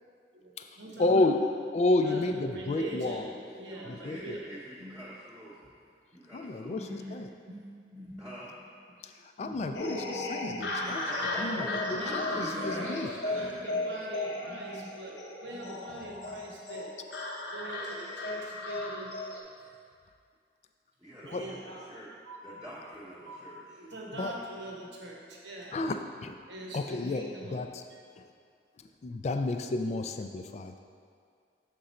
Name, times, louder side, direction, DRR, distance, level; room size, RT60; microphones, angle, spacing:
voice 1, 0.3-1.5 1.9-4.5 4.8-4.9 6.7-7.2 7.5-7.7 7.9-8.3 9.4-13.0 13.3-16.9 17.5-19.1 21.3-21.9 22.3-22.4 23.3-23.4 23.7-25.8 26.5-27.6, right 1 dB, 80° right, -2 dB, 1.0 m, -43 dB
voice 2, 1.0-1.4 1.7-3.3 3.9-4.4 6.3-7.3 9.0-9.1 9.4-11.0 11.4-13.1 21.3-21.4 24.2-24.3 25.7-26.3 26.7-27.3 27.5-27.7 29.0-30.8, left 2 dB, 40° left, 7 dB, 0.3 m, -30 dB
voice 3, 3.4-5.6 6.1-7.2 8.2-8.6 10.8-13.7 21.0-22.1 22.4-23.8 24.1-24.4, equal, 10° right, -11 dB, 0.9 m, -46 dB
sound 1, 9.7-19.4, left 2 dB, 75° left, 0.7 m, -35 dB
6.8 x 3.7 x 4.2 m, 2.2 s
head